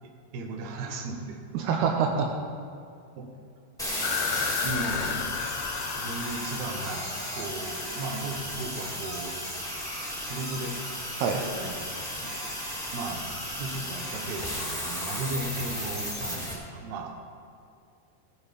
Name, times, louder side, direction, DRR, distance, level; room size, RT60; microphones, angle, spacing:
voice 1, 0.0-1.4 2.1-2.3 3.2-3.3 4.4-5.4 6.0-7.0 7.4-9.3 9.9-10.7 11.3-11.8 12.2-12.4 12.9-17.1, right 3 dB, 60° right, 2 dB, 2.1 m, -36 dB
voice 2, 1.5-2.3 11.2-11.4, right 6 dB, 75° right, 3 dB, 2.6 m, -25 dB
sound 1, 3.8-16.5, equal, ahead, 1.6 m, -34 dB
sound 2, 4.0-8.4, left 11 dB, 85° left, 2.7 m, -34 dB
19.0 x 7.0 x 5.2 m, 2.4 s
omnidirectional pair, 5.0 m